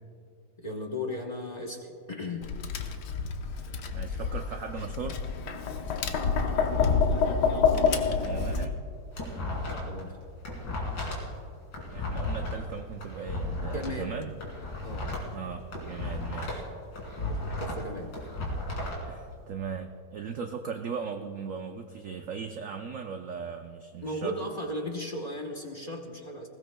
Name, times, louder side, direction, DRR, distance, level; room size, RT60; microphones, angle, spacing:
voice 1, 0.6-2.5 6.7-7.0 9.7-10.2 13.6-14.1 14.8-15.1 17.1-18.1 24.0-26.5, left 1 dB, 35° left, 2 dB, 0.7 m, -36 dB
Tap, 2.4-8.6, left 5 dB, 70° left, 1.4 m, -27 dB
voice 2, 3.9-5.2 8.2-8.8 11.8-14.3 15.3-16.6 19.0-24.4, right 6 dB, 65° right, 5 dB, 0.8 m, -38 dB
sound 1, 8.8-10.0 10.3-13.9 14.3-16.7 16.9-19.0, left 2 dB, 85° left, 3.3 m, -34 dB
20.5 x 17.0 x 2.2 m, 2.3 s
omnidirectional pair, 1.9 m